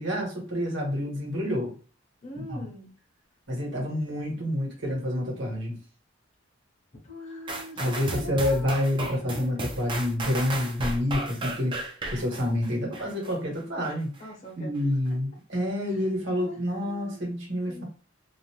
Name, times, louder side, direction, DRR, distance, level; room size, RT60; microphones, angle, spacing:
voice 1, 0.0-1.7 2.5-2.6 3.5-5.8 7.8-14.1 14.5-17.8, left 1 dB, 65° right, -1 dB, 1.2 m, -28 dB
voice 2, 2.2-3.0 7.0-9.7 14.2-14.7 15.0-15.2 15.8-16.1 16.3-17.3 17.7-17.8, left 1 dB, 35° left, -1 dB, 0.8 m, -42 dB
sound 1, 7.5-13.3 13.8-13.9, right 2 dB, 25° right, 0.4 m, -34 dB
2.5 x 2.1 x 2.9 m, 0.37 s
head